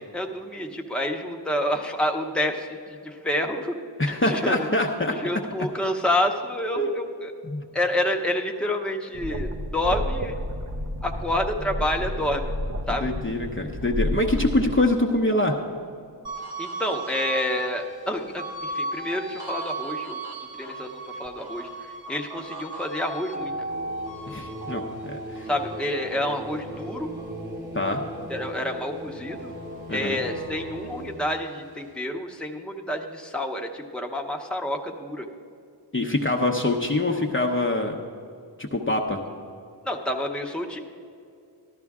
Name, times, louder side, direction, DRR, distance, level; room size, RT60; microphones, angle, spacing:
voice 1, 0.0-4.7 5.1-7.3 7.7-10.4 11.0-12.5 12.9-13.0 16.6-20.2 20.6-23.5 25.5-27.1 28.3-29.5 29.9-35.3 39.8-40.8, left 1 dB, ahead, 2 dB, 0.9 m, -28 dB
voice 2, 4.0-5.2 6.8-7.0 7.4-7.7 13.0-15.6 24.3-25.5 27.7-28.0 29.9-30.2 35.9-38.0 38.6-39.2, left 1 dB, 25° left, 1 dB, 0.8 m, -24 dB
sound 1, 9.1-14.7, left 1 dB, 40° right, 0.9 m, -31 dB
sound 2, 16.2-28.9 29.3-31.0, right 2 dB, 60° right, 1.5 m, -37 dB
sound 3, 23.4-31.2, equal, 25° right, 1.2 m, -38 dB
13.5 x 12.0 x 3.6 m, 2.4 s
wide cardioid pair, 50°, 45 cm